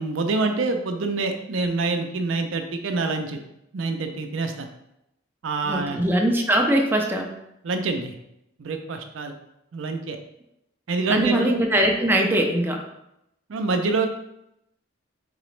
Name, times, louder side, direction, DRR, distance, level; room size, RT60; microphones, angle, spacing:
voice 1, 0.0-3.4 3.7-4.7 5.4-6.0 7.6-8.2 8.6-9.3 9.7-10.2 10.9-11.5 13.5-14.1, right 3 dB, 80° right, 5 dB, 0.5 m, -26 dB
voice 2, 5.6-7.3 11.1-12.9, right 1 dB, 10° right, 1 dB, 0.4 m, -21 dB
3.9 x 2.9 x 3.1 m, 0.83 s
head